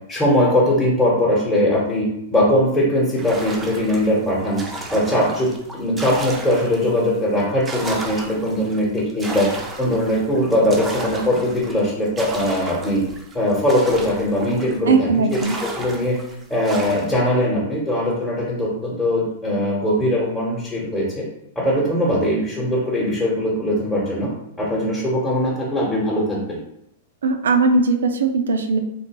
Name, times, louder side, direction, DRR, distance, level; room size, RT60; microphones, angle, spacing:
voice 1, 0.1-4.6 4.9-9.5 9.8-13.0 13.3-16.2 16.5-21.2 21.5-24.3 24.6-26.6, left 1 dB, 10° left, -5 dB, 1.0 m, -20 dB
sound 1, 3.2-7.0 7.4-14.9 15.3-17.3, right 2 dB, 15° right, 0.5 m, -34 dB
voice 2, 14.9-15.6 27.2-28.8, right 3 dB, 85° right, 6 dB, 0.4 m, -18 dB
3.1 x 2.4 x 2.9 m, 0.78 s
hypercardioid pair, 120°, 0 cm